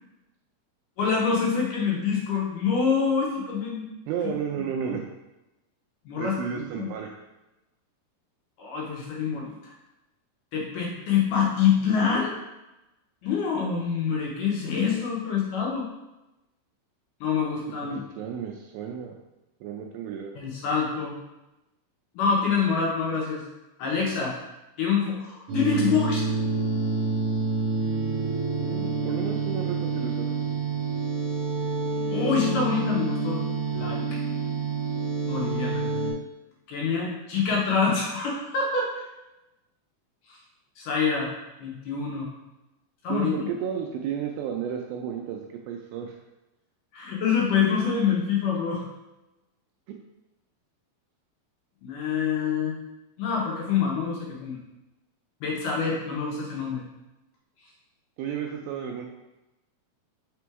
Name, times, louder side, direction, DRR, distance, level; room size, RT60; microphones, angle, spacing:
voice 1, 1.0-3.9 6.1-6.9 8.6-9.7 10.5-12.3 13.2-15.9 17.2-18.0 20.4-21.2 22.2-23.4 23.8-24.3 24.8-26.3 32.1-33.4 33.7-34.2 35.3-35.8 36.7-39.0 40.3-40.4 40.8-41.3 41.6-42.3 43.0-43.3 46.9-48.9 51.8-52.7 53.2-54.6 55.4-56.8, left 6 dB, 70° left, -3 dB, 2.1 m, -26 dB
voice 2, 4.1-5.1 6.2-7.2 17.9-19.2 19.6-20.4 28.6-30.4 43.1-46.2 49.9-50.0 58.2-59.1, right 8 dB, 85° right, 2 dB, 2.1 m, -33 dB
sound 1, 25.5-36.1, right 4 dB, 45° right, 2.6 m, -28 dB
6.0 x 3.7 x 4.6 m, 0.98 s
omnidirectional pair, 4.7 m